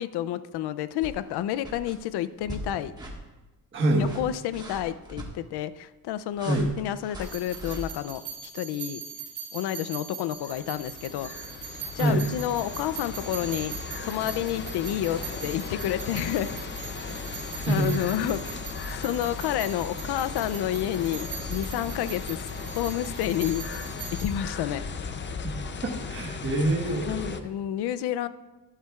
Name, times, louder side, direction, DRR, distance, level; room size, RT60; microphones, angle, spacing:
voice 1, 0.0-2.9 4.0-8.2 8.5-9.0 9.5-11.3 12.0-13.7 14.0-16.5 17.2-17.3 17.7-23.7 24.1-24.8 27.1-28.3, left 11 dB, 75° left, 14 dB, 0.5 m, -30 dB
sound 1, 1.0-1.3 1.6-2.0 2.4-2.7 2.9-3.2 3.9-5.3 6.4-7.9, right 1 dB, 10° right, 1.5 m, -40 dB
voice 2, 3.7-4.0 6.4-6.7 12.0-12.2 17.7-18.0 18.9-19.0 25.4-25.5 25.8-27.4, right 2 dB, 30° right, -3 dB, 1.4 m, -25 dB
sound 2, 7.2-24.3, right 7 dB, 90° right, 3.3 m, -41 dB
sound 3, 10.3-27.4, left 5 dB, 30° left, 0.5 m, -37 dB
12.0 x 11.5 x 2.4 m, 1.1 s
cardioid pair, 135°, 40 cm